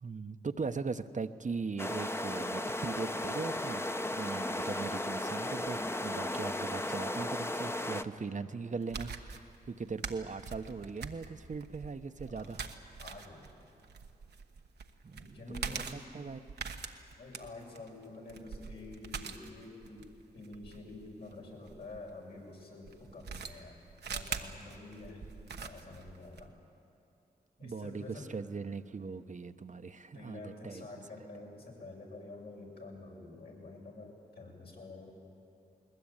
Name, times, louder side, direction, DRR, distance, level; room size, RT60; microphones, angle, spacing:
voice 1, 0.0-12.7 15.0-15.4 15.7-16.4 27.6-30.8, right 4 dB, 50° right, 9 dB, 1.0 m, -40 dB
sound 1, 1.8-8.0, left 1 dB, 15° left, 1.0 m, -35 dB
sound 2, 8.8-22.0 22.8-26.5, right 5 dB, 80° right, 1.2 m, -43 dB
voice 2, 12.3-12.6 13.0-13.6 15.1-16.0 17.2-26.5 27.6-28.3 30.1-35.1, left 2 dB, 75° left, -2 dB, 6.7 m, -48 dB
21.0 x 20.0 x 8.9 m, 2.6 s
cardioid pair, 45°, 17 cm